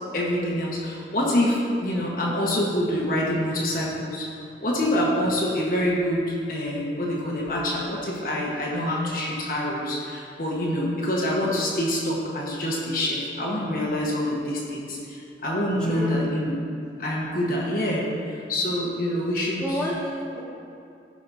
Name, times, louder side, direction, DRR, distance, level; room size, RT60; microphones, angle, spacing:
voice 1, 0.1-4.3 4.6-16.6 17.0-19.8, left 1 dB, 50° left, -4 dB, 1.2 m, -26 dB
voice 2, 15.8-16.2 19.6-20.4, equal, 5° left, -8 dB, 1.6 m, -30 dB
15.5 x 5.6 x 2.7 m, 2.6 s
head